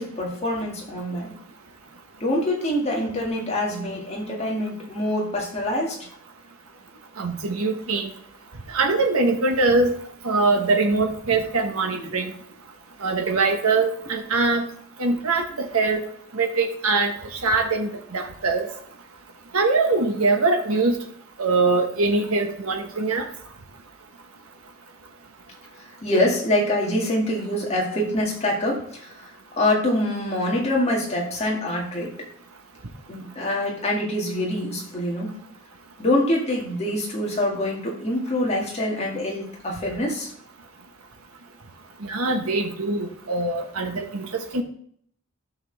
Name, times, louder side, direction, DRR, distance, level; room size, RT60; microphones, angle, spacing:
voice 1, 0.0-1.3 2.2-6.0 12.0-12.1 26.0-29.3 29.6-32.1 33.1-35.4 36.0-40.3, left 1 dB, 30° left, -2 dB, 2.1 m, -25 dB
voice 2, 7.2-8.1 8.7-10.0 10.2-12.3 13.0-14.7 15.0-16.0 16.3-17.1 17.4-18.7 19.5-20.9 21.4-23.3 42.0-44.6, right 3 dB, 90° right, 4 dB, 1.1 m, -22 dB
13.0 x 5.9 x 3.4 m, 0.63 s
head